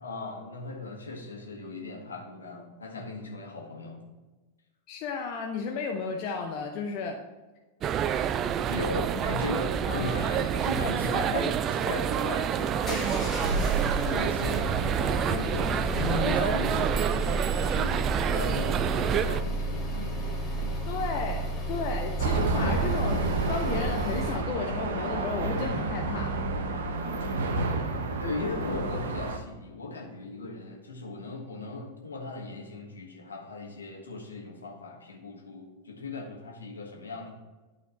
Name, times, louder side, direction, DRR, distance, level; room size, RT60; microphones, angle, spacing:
voice 1, 0.0-4.0 8.7-13.5 14.0-20.8 22.3-23.0 28.2-37.3, left 2 dB, 75° left, -1 dB, 1.8 m, -37 dB
voice 2, 4.9-7.2 9.2-9.3 9.8-10.3 20.9-23.2 23.5-26.4, left 5 dB, 40° left, 1 dB, 0.8 m, -33 dB
sound 1, 7.8-19.4, right 9 dB, 30° right, 0.3 m, -28 dB
sound 2, 12.5-24.4, right 2 dB, 15° left, 1.8 m, -32 dB
sound 3, 22.2-29.4, right 3 dB, 60° right, 0.9 m, -30 dB
11.5 x 4.3 x 4.0 m, 1.2 s
figure-of-eight pair, 90°, 0 cm